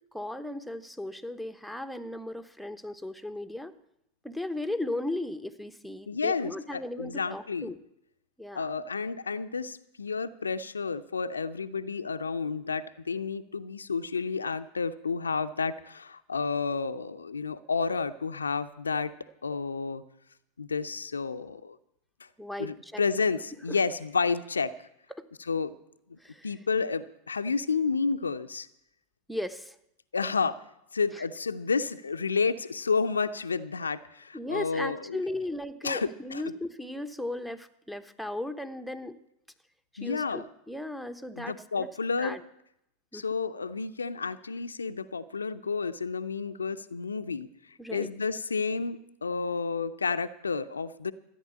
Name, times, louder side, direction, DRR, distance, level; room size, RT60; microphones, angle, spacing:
voice 1, 0.1-3.7 4.2-7.8 8.4-8.7 22.4-23.0 23.7-23.8 25.1-25.2 26.2-26.5 29.3-29.8 31.1-31.3 34.3-39.1 39.9-41.9 42.2-42.4 43.1-43.2 47.8-48.1, left 1 dB, ahead, 7 dB, 1.0 m, -36 dB
voice 2, 6.1-7.7 8.5-19.1 19.4-20.0 20.6-21.8 22.6-24.7 25.5-25.7 26.1-26.2 26.4-28.7 30.1-30.6 30.9-35.2 35.8-36.4 40.0-40.4 41.4-42.4 43.1-47.5 47.9-51.1, left 5 dB, 80° left, 11 dB, 0.6 m, -30 dB
14.0 x 9.5 x 8.3 m, 0.80 s
figure-of-eight pair, 85°, 0 cm